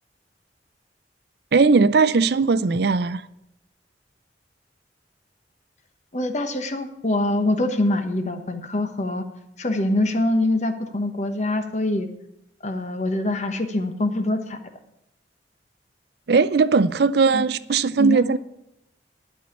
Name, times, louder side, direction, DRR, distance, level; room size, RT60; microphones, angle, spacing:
voice 1, 1.5-3.2 16.3-18.4, right 4 dB, 65° right, 0.5 m, -18 dB
voice 2, 6.1-9.2 9.6-12.1 12.6-14.6 17.3-17.5 18.0-18.2, left 1 dB, 40° left, 1.1 m, -24 dB
11.5 x 5.6 x 8.9 m
head